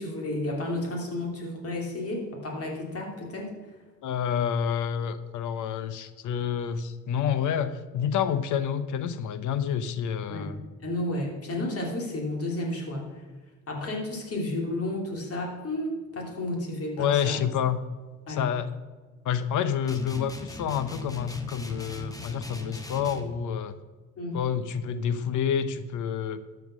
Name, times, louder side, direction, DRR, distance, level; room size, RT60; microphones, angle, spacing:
voice 1, 0.0-3.5 10.3-10.5 10.8-13.2 13.7-17.4 18.3-18.5 24.2-24.4, left 1 dB, 50° left, 0 dB, 3.0 m, -32 dB
voice 2, 4.0-10.6 17.0-17.8 18.3-18.7 19.2-23.8 24.3-26.4, left 8 dB, 80° left, 13 dB, 0.8 m, -28 dB
sound 1, 19.9-23.4, left 1 dB, 10° left, 1.2 m, -39 dB
12.5 x 5.8 x 6.1 m, 1.4 s
cardioid pair, 90°, 30 cm